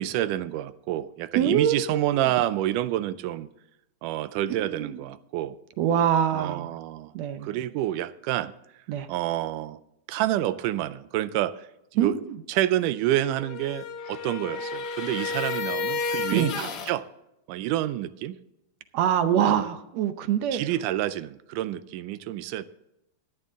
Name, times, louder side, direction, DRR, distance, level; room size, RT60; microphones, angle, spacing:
voice 1, 0.0-3.5 4.0-5.6 6.3-7.1 7.4-8.5 9.1-9.8 10.1-12.2 12.5-17.1 17.5-18.4 19.4-19.5 20.5-22.6, right 13 dB, 90° right, 2.2 m, -28 dB
voice 2, 1.4-2.3 4.7-5.0 5.8-6.7 7.1-7.5 8.9-9.1 12.0-12.4 16.3-16.5 18.9-20.6, right 9 dB, 75° right, 1.7 m, -24 dB
sound 1, 13.3-17.0, left 4 dB, 70° left, 0.9 m, -31 dB
13.0 x 10.5 x 3.7 m
omnidirectional pair, 3.6 m